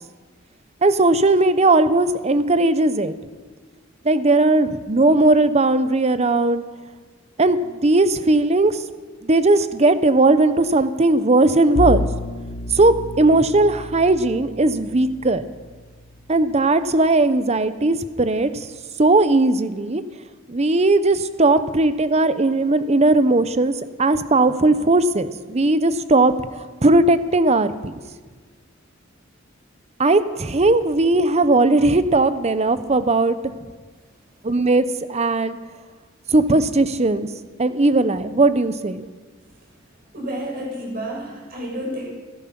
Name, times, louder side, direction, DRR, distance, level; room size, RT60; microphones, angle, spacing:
voice 1, 0.8-3.1 4.0-6.6 7.4-8.8 9.2-12.1 12.7-15.4 16.3-18.7 19.0-20.0 20.5-23.7 24.0-28.0 30.0-33.4 34.4-35.6 36.3-37.3 37.6-39.1, right 2 dB, 35° right, 12 dB, 0.8 m, -18 dB
Bowed string instrument, 11.7-16.8, left 1 dB, 70° left, 0.9 m, -30 dB
voice 2, 40.1-42.0, equal, 50° right, -3 dB, 6.4 m, -30 dB
16.0 x 14.0 x 6.0 m, 1.4 s
head